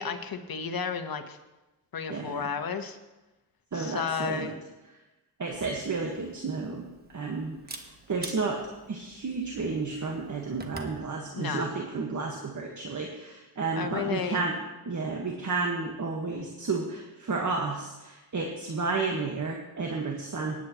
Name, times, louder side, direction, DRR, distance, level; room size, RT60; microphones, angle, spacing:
voice 1, 0.0-1.4 1.9-3.0 3.7-4.5 11.3-11.7 13.8-14.4, left 6 dB, 60° left, 7 dB, 1.3 m, -32 dB
voice 2, 2.1-2.5 3.7-4.5 5.4-8.6 8.9-14.6 14.8-20.6, right 4 dB, 45° right, 0 dB, 1.5 m, -32 dB
Camera, 5.5-11.0, right 2 dB, 25° right, 1.3 m, -47 dB
18.5 x 9.4 x 3.0 m, 1.1 s
cardioid pair, 75°, 40 cm